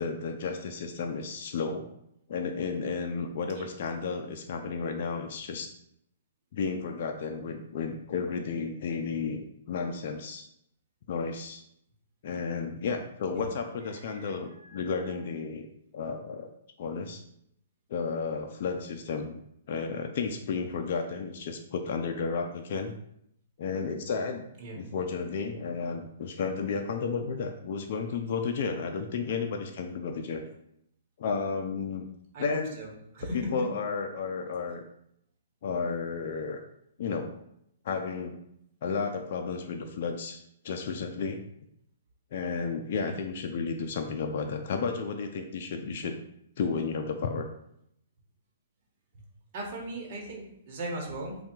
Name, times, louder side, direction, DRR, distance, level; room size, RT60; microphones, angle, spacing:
voice 1, 0.0-1.9 2.3-5.7 6.5-9.4 9.7-10.5 11.1-11.6 12.2-15.7 15.9-16.5 16.8-17.2 17.9-19.4 19.7-22.9 23.6-24.5 24.8-30.4 31.2-32.1 32.4-32.8 33.3-34.8 35.6-36.6 37.0-37.4 37.8-38.4 38.8-41.4 42.3-46.2 46.6-47.4, left 5 dB, 55° left, 4 dB, 0.4 m, -32 dB
voice 2, 14.0-14.9 24.6-24.8 32.3-32.9 33.1-33.5 43.0-43.2 49.5-51.4, right 1 dB, 40° right, -1 dB, 1.1 m, -38 dB
3.4 x 2.3 x 4.4 m, 0.75 s
hypercardioid pair, 155°, 0 cm